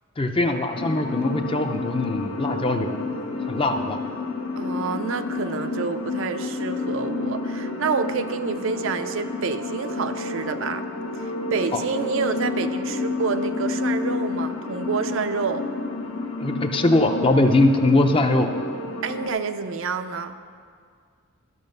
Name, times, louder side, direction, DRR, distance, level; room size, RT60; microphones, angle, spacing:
voice 1, 0.2-3.1 3.5-4.0 11.7-11.8 16.4-18.5, left 2 dB, 25° left, 6 dB, 0.5 m, -21 dB
sound 1, 0.7-19.3, left 3 dB, 70° left, 1.2 m, -30 dB
voice 2, 4.5-10.8 11.2-15.7 19.0-20.3, right 5 dB, 60° right, 9 dB, 0.5 m, -28 dB
12.5 x 5.6 x 6.6 m, 2.1 s
head